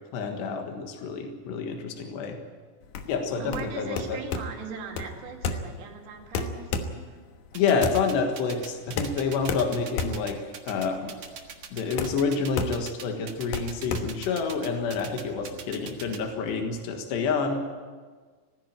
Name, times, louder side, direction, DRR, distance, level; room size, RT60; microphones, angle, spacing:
voice 1, 0.1-2.4 3.1-4.2 7.6-10.4 10.7-11.2 11.7-17.6, left 5 dB, 85° left, 4 dB, 3.8 m, -28 dB
sound 1, 2.8-15.0, left 4 dB, 65° left, 2.6 m, -33 dB
voice 2, 3.4-7.2, right 5 dB, 85° right, 2 dB, 4.6 m, -40 dB
sound 2, 7.5-16.2, right 7 dB, 55° right, 1.8 m, -41 dB
19.0 x 15.0 x 8.9 m, 1.5 s
omnidirectional pair, 4.8 m